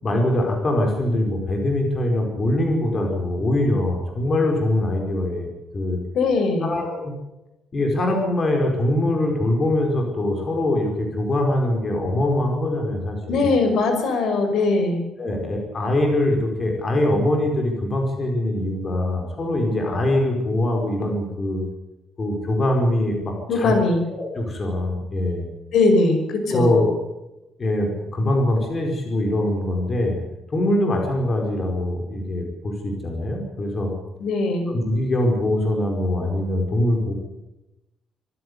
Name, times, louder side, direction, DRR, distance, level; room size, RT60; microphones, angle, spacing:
voice 1, 0.0-6.0 6.6-7.1 7.7-13.5 15.2-21.6 22.2-23.7 24.1-25.5 26.5-26.9 27.6-30.2 30.5-33.9 34.7-37.1, left 1 dB, 25° left, 2 dB, 4.6 m, -23 dB
voice 2, 6.1-6.7 13.3-15.0 23.5-24.0 25.7-26.8 34.2-34.7, left 3 dB, 65° left, 6 dB, 5.6 m, -20 dB
25.5 x 15.5 x 8.1 m, 0.95 s
cardioid pair, 180°, 0 cm